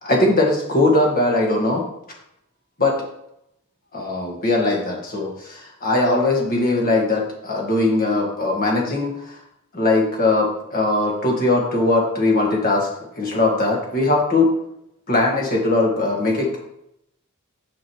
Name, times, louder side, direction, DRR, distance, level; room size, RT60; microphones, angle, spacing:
voice 1, 0.0-1.8 2.8-3.0 3.9-9.3 9.7-12.9 13.2-14.5 15.1-16.6, left 2 dB, 40° left, -1 dB, 1.6 m, -20 dB
7.3 x 6.1 x 3.1 m, 0.81 s
head